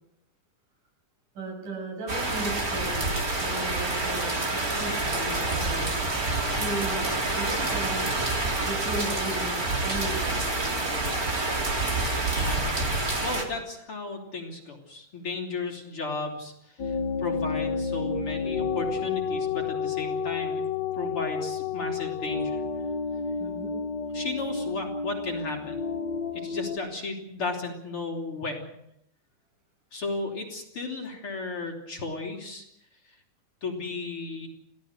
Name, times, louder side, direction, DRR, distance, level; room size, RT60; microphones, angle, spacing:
voice 1, 1.3-5.9 6.5-7.1 7.3-8.1 8.6-9.6 9.8-11.1 23.4-23.8, right 1 dB, 70° right, 1 dB, 9.4 m, -36 dB
sound 1, 2.1-13.4, right 2 dB, 25° right, 3.6 m, -27 dB
voice 2, 12.3-12.7 13.2-20.6 21.0-22.6 24.1-25.8 26.4-28.7 29.9-32.6 33.6-34.5, left 3 dB, 40° left, 1 dB, 3.9 m, -34 dB
sound 2, 16.8-26.8, left 5 dB, 70° left, 1.0 m, -30 dB
28.5 x 17.5 x 6.6 m, 0.78 s
omnidirectional pair, 3.8 m